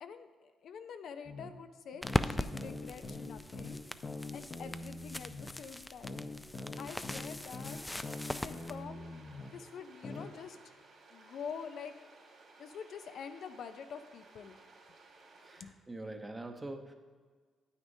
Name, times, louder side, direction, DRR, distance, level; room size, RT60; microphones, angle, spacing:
voice 1, 0.0-3.8 4.3-6.2 6.8-7.8 8.4-9.1 9.5-10.6 11.1-11.9 12.6-14.6 15.6-15.7, left 6 dB, 65° left, 9 dB, 0.5 m, -46 dB
sound 1, 1.2-1.5 2.0-5.5 6.0-9.5 10.0-10.3, left 2 dB, 40° left, 0.8 m, -43 dB
sound 2, 2.0-8.7, left 1 dB, 10° left, 0.3 m, -39 dB
voice 2, 2.4-2.7 15.4-16.9, right 2 dB, 20° right, 4 dB, 0.8 m, -44 dB
sound 3, 7.4-15.6, right 3 dB, 60° right, 2.3 m, -58 dB
9.5 x 8.6 x 2.7 m, 1.5 s
cardioid pair, 90°, 0 cm